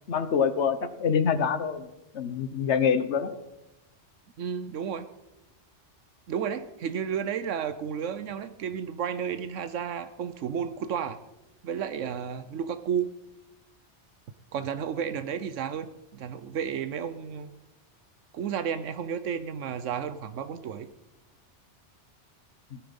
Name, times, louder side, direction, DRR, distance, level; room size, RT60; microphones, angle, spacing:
voice 1, 0.1-1.9 2.1-3.3 22.7-22.8, left 6 dB, 70° left, 12 dB, 1.3 m, -25 dB
voice 2, 4.4-5.1 6.3-11.2 11.6-13.1 14.5-17.5 18.3-20.9, right 7 dB, 90° right, 11 dB, 1.1 m, -32 dB
18.0 x 12.5 x 5.3 m, 0.95 s
omnidirectional pair, 1.2 m